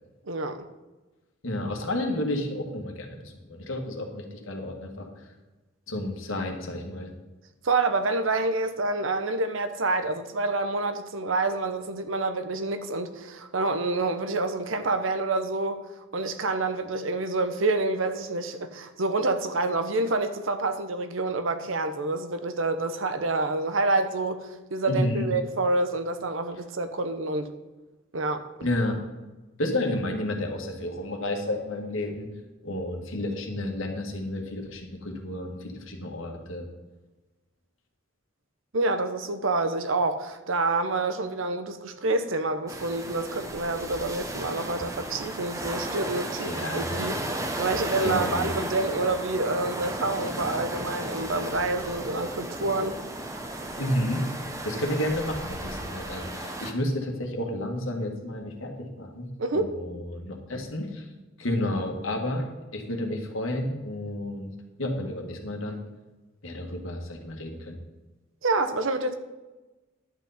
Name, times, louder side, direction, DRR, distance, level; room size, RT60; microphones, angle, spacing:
voice 1, 0.3-0.7 7.6-15.8 16.1-27.5 28.1-28.7 38.7-47.2 47.6-53.0 59.4-59.8 68.4-69.1, right 2 dB, 75° right, 0.9 m, -27 dB
voice 2, 1.4-5.1 5.9-7.1 24.9-25.3 28.6-29.0 29.6-32.3 32.6-36.7 46.4-47.1 48.0-48.5 53.8-54.2 54.6-61.0 61.4-62.5 62.7-64.5 64.8-65.8 66.4-67.8, left 1 dB, 80° left, 1.7 m, -31 dB
sound 1, 42.7-56.7, right 1 dB, 15° right, 0.9 m, -34 dB
11.0 x 8.0 x 4.2 m
head